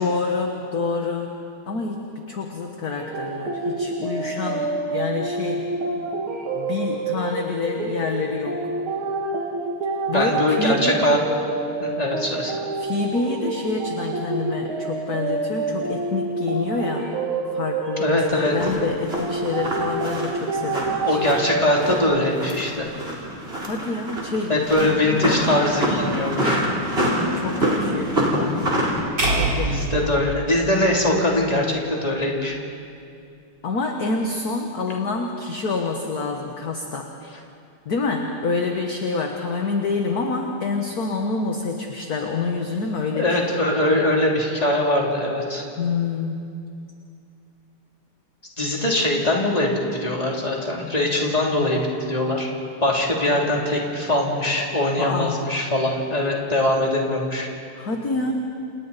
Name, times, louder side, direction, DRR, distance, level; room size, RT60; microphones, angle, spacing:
voice 1, 0.0-1.3 1.7-2.0 2.3-5.6 6.5-8.6 10.1-11.0 12.8-17.1 17.5-21.4 23.7-25.6 27.3-28.8 29.3-30.1 33.6-37.1 37.9-43.8 45.8-46.5 55.0-55.4 57.8-58.3, left 4 dB, 50° left, 2 dB, 1.7 m, -27 dB
sound 1, 3.0-22.0, right 3 dB, 70° right, 2.7 m, -28 dB
voice 2, 10.1-11.2 11.8-12.5 18.0-18.5 21.0-22.9 24.5-26.6 29.6-32.6 43.1-45.6 48.6-52.5 52.8-57.5, left 1 dB, 15° left, -2 dB, 3.1 m, -22 dB
sound 2, 18.3-29.0, right 1 dB, 25° right, 4.0 m, -26 dB
sound 3, 29.2-31.4, right 2 dB, 50° right, 5.1 m, -25 dB
29.5 x 29.0 x 4.2 m, 2.5 s
omnidirectional pair, 2.4 m